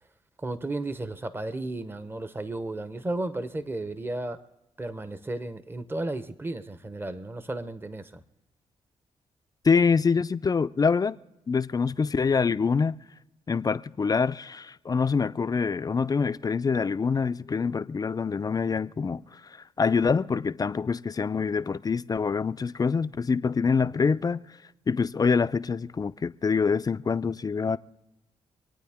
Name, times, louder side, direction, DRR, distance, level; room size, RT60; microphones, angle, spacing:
voice 1, 0.4-4.4 4.8-8.2, right 2 dB, 20° right, 0.8 m, -34 dB
voice 2, 9.6-11.2 11.5-13.0 13.5-24.4 24.9-27.8, left 5 dB, 30° left, 0.4 m, -25 dB
26.5 x 9.2 x 3.5 m
cardioid pair, 85°, 12 cm